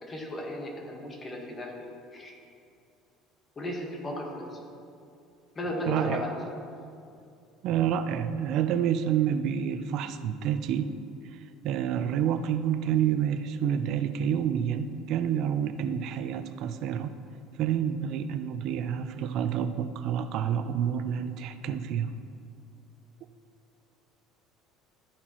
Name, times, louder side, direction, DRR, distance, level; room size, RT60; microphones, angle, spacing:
voice 1, 0.0-2.4 3.5-4.6 5.5-6.3, left 1 dB, 20° left, 0 dB, 1.4 m, -35 dB
voice 2, 5.8-6.2 7.6-11.0 11.3-17.2 17.6-22.1, right 9 dB, 55° right, 10 dB, 0.5 m, -28 dB
13.0 x 9.9 x 3.1 m, 2.4 s
cardioid pair, 155°, 0 cm